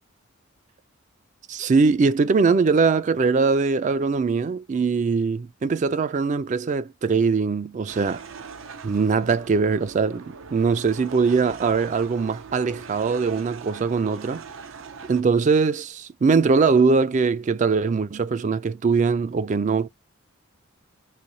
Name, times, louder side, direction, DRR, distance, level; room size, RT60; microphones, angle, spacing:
voice 1, 1.5-8.2 8.8-14.4 15.0-19.9, right 4 dB, 35° right, 0.3 m, -21 dB
sound 1, 7.9-15.2, right 5 dB, 80° right, 0.6 m, -41 dB
3.2 x 2.6 x 4.0 m
head